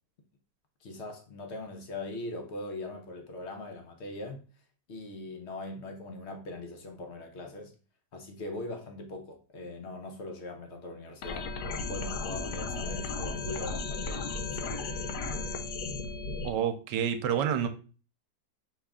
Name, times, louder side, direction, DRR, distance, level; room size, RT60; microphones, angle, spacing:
voice 1, 0.8-4.4 4.9-7.7 8.1-11.5 11.9-14.3 14.6-14.9, left 2 dB, 55° left, 0.8 m, -41 dB
sound 1, 11.2-16.5, left 3 dB, 75° left, 1.2 m, -35 dB
voice 2, 16.4-17.7, right 8 dB, 85° right, 1.2 m, -28 dB
5.4 x 2.4 x 3.5 m
omnidirectional pair, 1.9 m